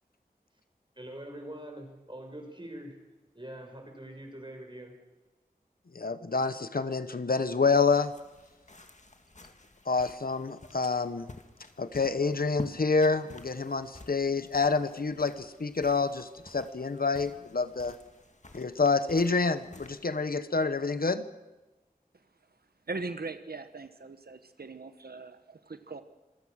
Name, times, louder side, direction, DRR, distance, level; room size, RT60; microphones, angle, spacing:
voice 1, 1.0-3.0 3.4-4.9, right 1 dB, 30° right, 3 dB, 5.5 m, -43 dB
voice 2, 5.9-8.1 9.9-11.3 11.8-18.0 18.5-21.2, left 4 dB, 70° left, 12 dB, 1.0 m, -28 dB
sound 1, 7.7-20.5, left 2 dB, 50° left, 2.0 m, -51 dB
voice 3, 22.9-26.0, right 3 dB, 85° right, 9 dB, 1.2 m, -40 dB
26.0 x 16.0 x 6.4 m, 1.1 s
wide cardioid pair, 55°, 16 cm